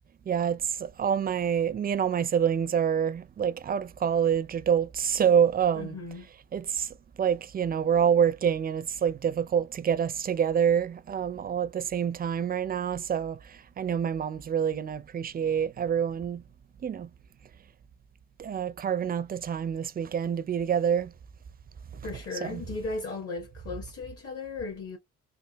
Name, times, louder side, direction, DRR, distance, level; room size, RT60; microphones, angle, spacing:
voice 1, 0.3-6.0 6.5-6.9 7.2-13.4 13.8-16.4 16.8-17.1 18.4-21.1 22.4-22.6, right 8 dB, 30° right, 0.4 m, -27 dB
voice 2, 5.7-6.3 22.0-25.0, left 3 dB, 50° left, 1.4 m, -36 dB
3.5 x 2.3 x 2.9 m
cardioid pair, 90°, 30 cm